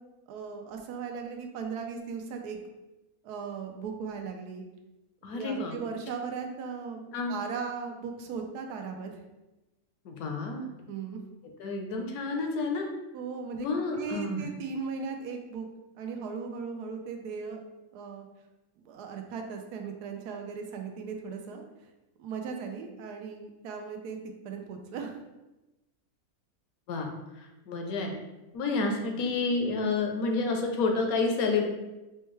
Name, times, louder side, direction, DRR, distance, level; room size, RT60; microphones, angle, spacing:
voice 1, 0.3-2.6 3.2-4.7 5.3-9.2 10.9-11.2 13.1-13.7 14.0-15.7 16.0-17.6 17.9-18.2 18.8-21.9 22.2-24.2 24.4-25.2, right 5 dB, 90° right, 4 dB, 1.1 m, -37 dB
voice 2, 5.2-5.8 7.1-7.4 10.0-10.7 11.6-12.9 13.6-14.4 26.9-28.1 28.5-31.7, left 3 dB, 75° left, 3 dB, 1.0 m, -29 dB
4.4 x 2.2 x 3.1 m, 1.0 s
omnidirectional pair, 1.6 m